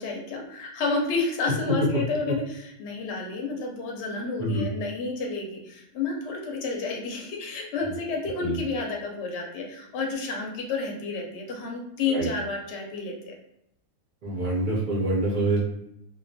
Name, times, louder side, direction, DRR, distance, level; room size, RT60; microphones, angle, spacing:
voice 1, 0.0-13.3, left 3 dB, 65° left, 0 dB, 0.7 m, -30 dB
voice 2, 14.2-15.6, right 2 dB, 60° right, -5 dB, 0.5 m, -26 dB
2.2 x 2.2 x 2.6 m, 0.80 s
omnidirectional pair, 1.5 m